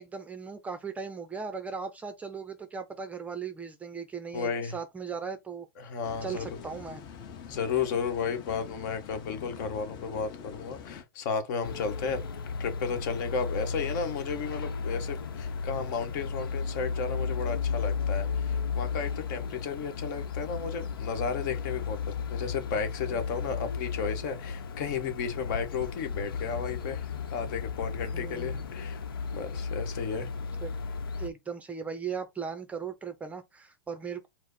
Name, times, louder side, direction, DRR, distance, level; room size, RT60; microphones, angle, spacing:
voice 1, 0.0-5.7 6.2-7.0 28.1-28.6 30.6-30.7 31.2-34.3, right 6 dB, 10° right, 0.5 m, -38 dB
voice 2, 4.3-4.7 5.8-6.5 7.5-12.2 12.6-29.0 29.3-30.3, left 6 dB, 55° left, 1.3 m, -33 dB
sound 1, 6.0-11.0, left 7 dB, 40° left, 0.9 m, -45 dB
sound 2, 11.6-31.3, left 5 dB, 85° left, 0.8 m, -34 dB
4.7 x 2.1 x 4.0 m
hypercardioid pair, 130°, 12 cm